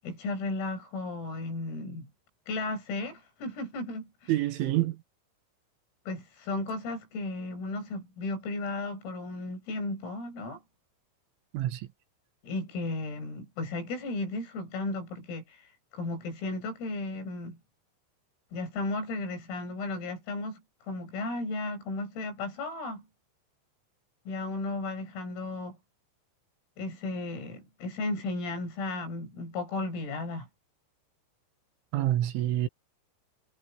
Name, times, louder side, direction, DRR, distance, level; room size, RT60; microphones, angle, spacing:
voice 1, 0.0-2.1 2.5-4.3 6.1-10.6 12.4-15.6 15.9-17.6 18.5-23.1 24.3-25.8 26.8-30.5, left 2 dB, 80° left, 11.0 m, -35 dB
voice 2, 4.3-5.0 11.5-11.9 31.9-32.7, right 14 dB, 75° right, 4.0 m, -27 dB
omnidirectional pair, 5.9 m